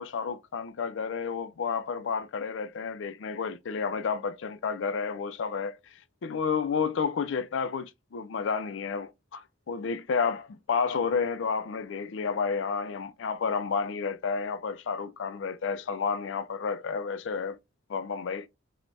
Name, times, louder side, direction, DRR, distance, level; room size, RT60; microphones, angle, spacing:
voice 1, 0.0-5.8 6.2-17.6 17.9-18.5, left 5 dB, 85° left, 0.4 m, -31 dB
4.5 x 2.1 x 2.5 m
head